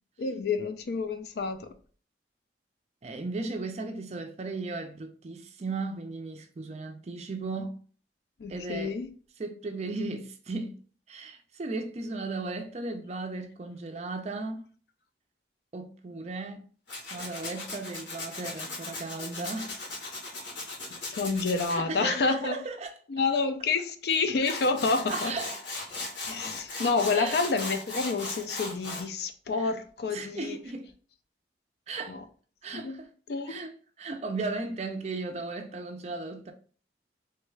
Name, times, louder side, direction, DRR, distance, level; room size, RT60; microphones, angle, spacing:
voice 1, 0.2-1.7 8.4-9.1 21.1-22.6 23.1-25.3 26.3-30.6 32.1-32.2 32.7-33.0 33.3-33.6, left 4 dB, 60° left, 0.4 m, -29 dB
voice 2, 3.0-7.8 8.5-9.0 9.4-10.8 11.1-14.6 15.7-16.7 17.1-19.7 21.7-22.9 25.1-25.6 27.1-27.4 29.6-29.7 30.1-30.9 31.9-32.2 32.6-33.1 33.5-36.5, right 3 dB, 35° right, 0.4 m, -36 dB
Tools, 16.9-21.8 24.1-24.2 24.4-29.1, left 2 dB, 85° left, 1.1 m, -37 dB
3.2 x 2.3 x 3.2 m
head